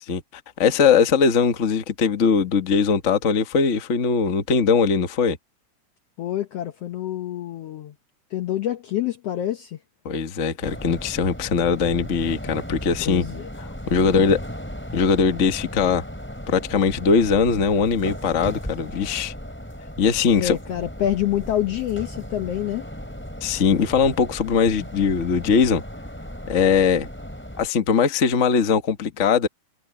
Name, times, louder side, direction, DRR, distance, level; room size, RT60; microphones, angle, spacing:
voice 1, 0.6-5.4 10.0-13.2 13.9-14.4 14.9-16.0 16.5-19.3 20.0-20.6 23.4-25.8 26.5-27.1 27.6-29.5, left 6 dB, 50° left, 0.9 m, -20 dB
voice 2, 6.2-7.9 8.3-9.8 13.0-13.5 14.0-14.4 20.3-22.8, left 12 dB, 70° left, 1.5 m, -27 dB
sound 1, 10.6-27.7, equal, 5° left, 4.6 m, -36 dB
omnidirectional pair, 3.7 m